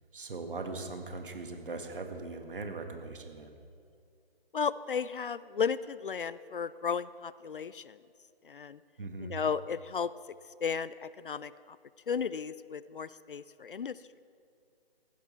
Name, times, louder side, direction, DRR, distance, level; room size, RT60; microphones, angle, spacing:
voice 1, 0.1-3.6 9.0-9.3, right 3 dB, 55° right, 5 dB, 1.7 m, -40 dB
voice 2, 4.5-8.0 8.4-8.8 9.2-10.1 10.6-11.8 12.1-14.0, left 6 dB, 60° left, 17 dB, 0.4 m, -34 dB
15.5 x 12.0 x 4.4 m, 2.3 s
figure-of-eight pair, 150°, 31 cm